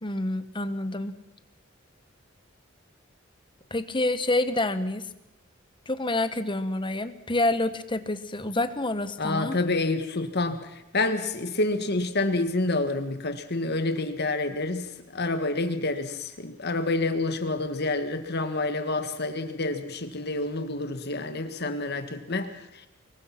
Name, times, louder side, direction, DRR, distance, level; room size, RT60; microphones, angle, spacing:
voice 1, 0.0-1.1 3.7-5.1 5.9-9.6, left 2 dB, 25° left, 11 dB, 1.3 m, -27 dB
voice 2, 9.2-22.5, left 2 dB, 55° left, 9 dB, 1.7 m, -28 dB
25.0 x 22.0 x 6.0 m, 0.85 s
head